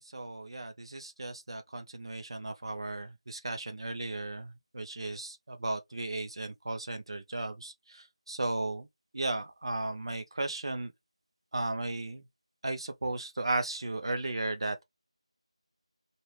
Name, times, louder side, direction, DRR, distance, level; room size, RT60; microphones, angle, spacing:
voice 1, 0.0-8.9 9.1-10.9 11.5-12.2 12.6-14.8, right 2 dB, 50° right, 0.6 m, -35 dB
2.5 x 2.3 x 3.1 m
figure-of-eight pair, 175°, 3 cm